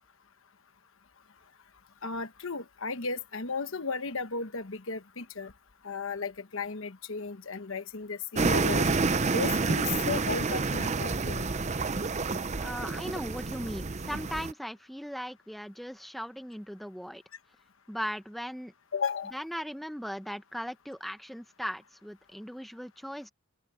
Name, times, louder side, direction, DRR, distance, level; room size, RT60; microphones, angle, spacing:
voice 1, 2.0-5.5 5.8-8.9 9.3-11.5 18.9-19.4, left 4 dB, 65° left, 1.2 m, -35 dB
sound 1, 8.4-14.5, right 3 dB, 30° right, 0.6 m, -29 dB
voice 2, 12.6-17.2 17.9-18.7 19.3-23.3, equal, ahead, 1.2 m, -38 dB
open air
head